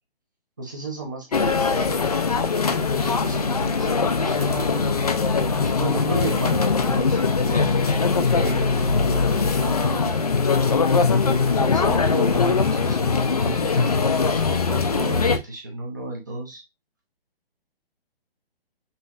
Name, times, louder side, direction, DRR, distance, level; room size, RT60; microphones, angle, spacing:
voice 1, 0.6-2.0 2.6-5.0 5.6-10.2 10.9-16.6, right 2 dB, 20° right, -1 dB, 0.6 m, -33 dB
sound 1, 1.3-15.4, left 4 dB, 40° left, 0.4 m, -21 dB
5.5 x 2.9 x 2.4 m, 0.22 s
hypercardioid pair, 170°, 30 cm